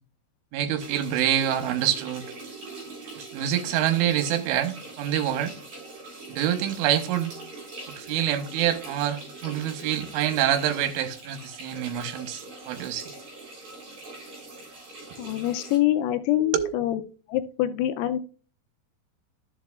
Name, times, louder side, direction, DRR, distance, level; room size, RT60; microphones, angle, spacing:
voice 1, 0.5-2.3 3.3-5.5 6.3-7.3 7.9-13.1 15.1-15.2 16.4-16.7, right 10 dB, 80° right, 3.4 m, -26 dB
sound 1, 0.8-15.8, right 2 dB, 40° right, 4.7 m, -42 dB
voice 2, 15.2-17.0 17.3-18.2, left 13 dB, 90° left, 3.4 m, -25 dB
12.0 x 7.6 x 2.4 m
omnidirectional pair, 5.9 m